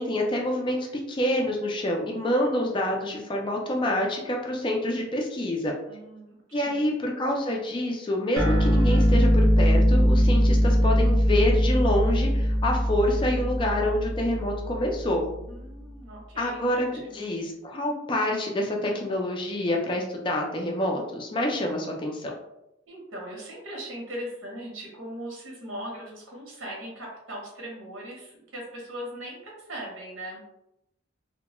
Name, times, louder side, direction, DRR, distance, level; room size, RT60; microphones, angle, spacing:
voice 1, 0.0-5.7 6.5-15.2 16.4-22.3, left 1 dB, 25° left, 0 dB, 0.3 m, -27 dB
voice 2, 5.9-6.9 15.5-17.2 22.9-30.4, right 1 dB, 85° right, -2 dB, 0.8 m, -39 dB
sound 1, 8.4-15.2, equal, 20° right, 0.6 m, -21 dB
2.2 x 2.1 x 2.9 m, 0.85 s
head